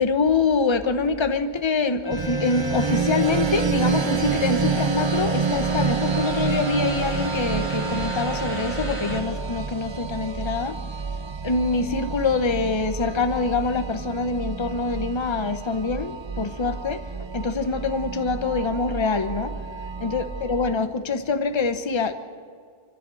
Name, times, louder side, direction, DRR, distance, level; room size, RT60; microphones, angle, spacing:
voice 1, 0.0-10.8 11.4-17.0 17.3-19.5 20.0-22.1, left 4 dB, 25° left, 9 dB, 1.0 m, -25 dB
sound 1, 2.0-9.2, equal, 10° left, 2.9 m, -33 dB
sound 2, 2.1-20.7, right 5 dB, 40° right, 0.4 m, -29 dB
26.0 x 14.0 x 7.7 m, 2.2 s
omnidirectional pair, 1.2 m